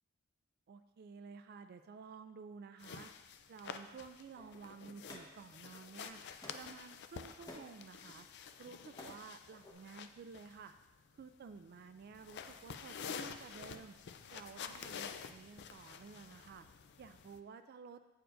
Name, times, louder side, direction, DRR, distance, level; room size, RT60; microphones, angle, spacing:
voice 1, 0.7-3.1 3.5-6.2 6.5-8.3 8.6-10.7 11.1-14.0 14.3-16.7 17.0-18.0, right 5 dB, 50° right, 9 dB, 0.3 m, -53 dB
sound 1, 2.8-17.4, left 6 dB, 55° left, 0.4 m, -49 dB
sound 2, 4.3-5.9 6.4-6.8 7.2-7.8 8.5-9.2 9.5-9.7, left 1 dB, 20° left, 1.0 m, -54 dB
8.7 x 6.9 x 2.5 m, 1.1 s
head